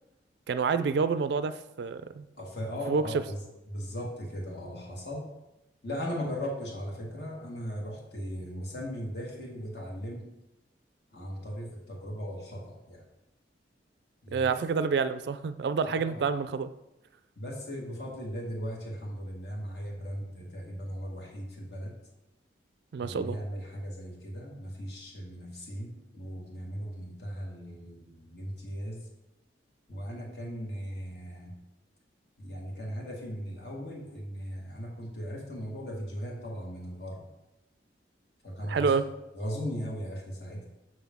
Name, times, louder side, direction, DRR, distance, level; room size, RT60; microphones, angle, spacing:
voice 1, 0.5-2.3 2.9-3.0 14.3-16.7 22.9-23.4 38.7-39.0, right 5 dB, 65° right, 12 dB, 0.3 m, -28 dB
voice 2, 2.4-5.3 5.8-10.3 11.1-13.0 14.2-14.9 15.8-16.2 17.3-21.9 23.0-29.0 29.9-31.5 32.4-37.2 38.4-39.1 39.3-40.7, equal, 60° left, -2 dB, 1.7 m, -38 dB
6.3 x 5.9 x 3.5 m, 0.92 s
head